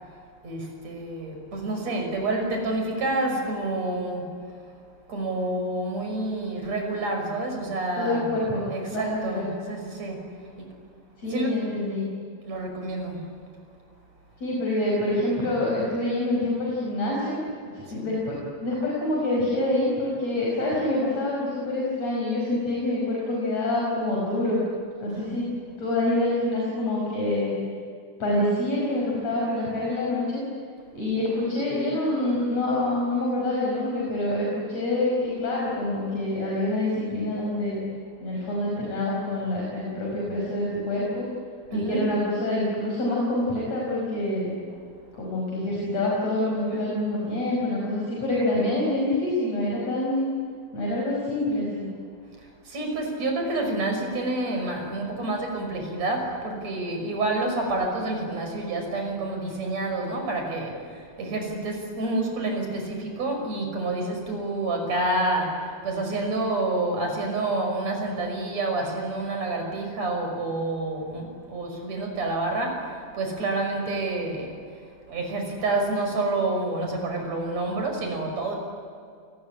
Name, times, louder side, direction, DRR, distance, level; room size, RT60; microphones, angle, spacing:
voice 1, 0.4-4.3 5.1-8.4 8.7-10.3 10.6-10.7 11.2-11.6 12.4-13.2 17.9-18.1 25.1-25.5 41.7-42.0 44.7-44.8 46.7-46.8 52.4-74.5 75.1-78.6, right 2 dB, 45° right, 2 dB, 6.9 m, -28 dB
voice 2, 8.0-8.6 8.9-9.5 11.2-12.1 14.4-17.4 17.7-24.6 25.0-25.5 25.8-27.5 28.2-30.4 30.9-37.8 38.2-41.3 41.7-44.5 45.1-50.3 50.7-51.9, left 1 dB, 45° left, -4 dB, 6.7 m, -26 dB
29.5 x 19.5 x 10.0 m, 2.3 s
omnidirectional pair, 4.2 m